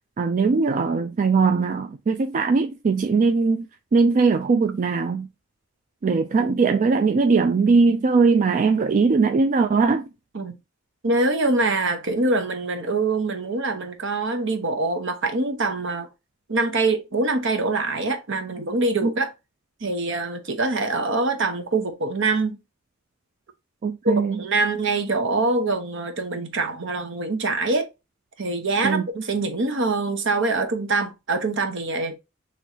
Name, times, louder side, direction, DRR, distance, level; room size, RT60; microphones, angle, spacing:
voice 1, 0.2-3.7 3.9-5.3 6.0-10.1 19.0-19.1 23.8-24.4 28.8-29.1, right 4 dB, 40° right, 0.3 m, -20 dB
voice 2, 11.0-16.1 16.5-19.3 19.8-22.6 24.0-27.9 28.4-32.2, right 3 dB, 65° right, 1.0 m, -24 dB
6.3 x 3.0 x 2.8 m
head